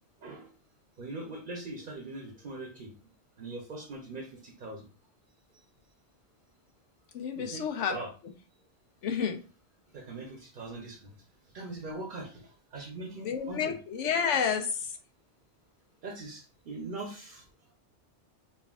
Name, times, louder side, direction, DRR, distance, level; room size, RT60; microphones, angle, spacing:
voice 1, 1.0-2.9 3.4-4.9 7.4-8.1 9.9-11.1 11.5-13.8 14.5-14.6 16.0-17.4, right 2 dB, 50° right, 1 dB, 0.8 m, -41 dB
voice 2, 7.1-8.0 9.0-9.4 13.2-14.8, left 7 dB, 85° left, 6 dB, 1.0 m, -30 dB
5.5 x 2.5 x 2.3 m, 0.35 s
omnidirectional pair, 1.2 m